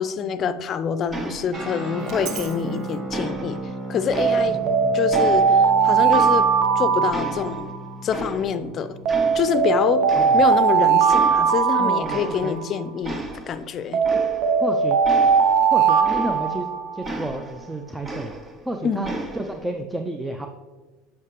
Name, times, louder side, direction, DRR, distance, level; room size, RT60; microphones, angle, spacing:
voice 1, 0.0-3.6 3.9-4.6 4.9-6.4 6.8-7.7 8.0-8.9 9.3-10.0 10.3-14.0 18.8-19.1, left 7 dB, 40° left, 13 dB, 0.5 m, -26 dB
sound 1, 1.1-1.8 2.1-2.7 3.1-4.7 5.1-6.8 7.1-8.7 9.1-9.8 10.1-10.7 11.1-11.6 12.0-12.7 13.0-16.7 17.0-18.7 19.0-19.7, right 1 dB, 25° right, 1.0 m, -35 dB
sound 2, 1.5-10.4, right 2 dB, 40° right, 1.8 m, -36 dB
Alarm, 2.1-2.5 4.2-7.9 9.1-12.8 13.9-17.1, right 6 dB, 60° right, 0.8 m, -19 dB
voice 2, 4.5-4.9 10.2-10.4 11.7-12.6 14.1-14.2 14.6-15.0 15.7-18.3 18.6-20.5, right 1 dB, 10° right, 5 dB, 0.6 m, -31 dB
8.7 x 5.8 x 3.2 m, 1.3 s
hypercardioid pair, 80°, 0 cm